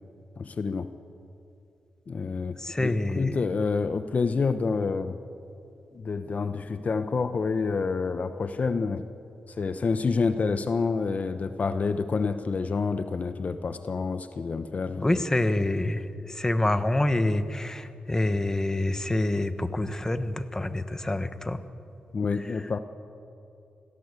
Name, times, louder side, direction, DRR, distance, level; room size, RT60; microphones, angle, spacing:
voice 1, 0.4-0.9 2.1-5.2 5.9-9.0 9.6-15.2 22.1-22.8, left 4 dB, 50° left, 10 dB, 0.9 m, -28 dB
voice 2, 2.6-3.4 15.0-21.6, left 1 dB, 15° left, 11 dB, 1.2 m, -27 dB
25.5 x 16.5 x 8.3 m, 2.7 s
cardioid pair, 70°, 3 cm